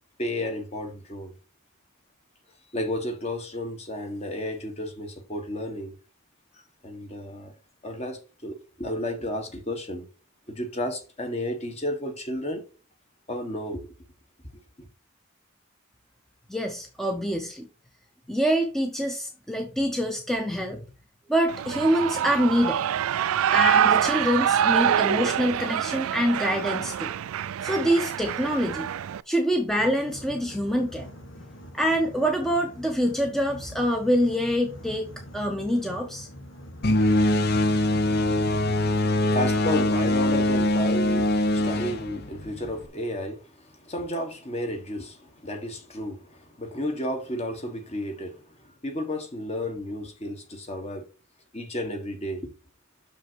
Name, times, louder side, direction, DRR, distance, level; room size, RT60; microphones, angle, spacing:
voice 1, 0.2-1.3 2.7-5.9 6.5-7.5 7.8-10.1 10.5-12.6 13.3-13.9 14.8-14.9 38.6-51.1 51.5-52.5, left 1 dB, 30° left, 1.5 m, -32 dB
voice 2, 16.5-17.7 18.3-20.8 21.3-22.8 23.5-27.1 27.6-28.9 29.3-31.1 31.7-35.1 35.3-36.3, equal, ahead, 0.7 m, -25 dB
Shout / Cheering, 21.5-29.2, right 9 dB, 90° right, 0.3 m, -25 dB
Boat Water vehicle, 29.7-40.7, equal, 65° left, 1.5 m, -44 dB
sound 1, 36.8-42.9, left 1 dB, 50° left, 0.7 m, -23 dB
6.4 x 5.5 x 4.6 m
head